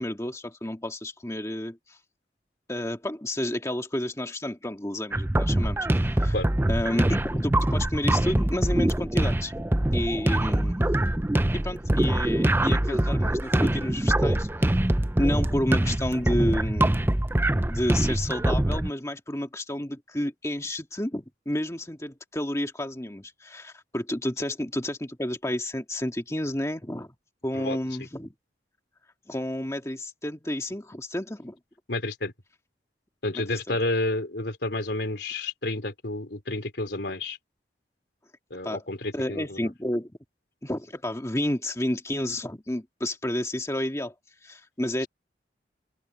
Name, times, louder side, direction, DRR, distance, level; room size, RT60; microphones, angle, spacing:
voice 1, 0.0-2.0 2.7-6.3 6.7-10.8 11.5-17.0 17.7-27.1 27.4-28.3 29.3-31.6 33.3-33.8 38.6-38.8 39.1-40.1 40.6-44.1 44.4-45.1, left 1 dB, 15° left, 1.8 m, -31 dB
sound 1, 5.1-18.9, right 1 dB, 10° right, 0.5 m, -24 dB
voice 2, 31.9-32.3 33.2-37.4 38.5-39.7, left 2 dB, 75° left, 3.2 m, -30 dB
open air
head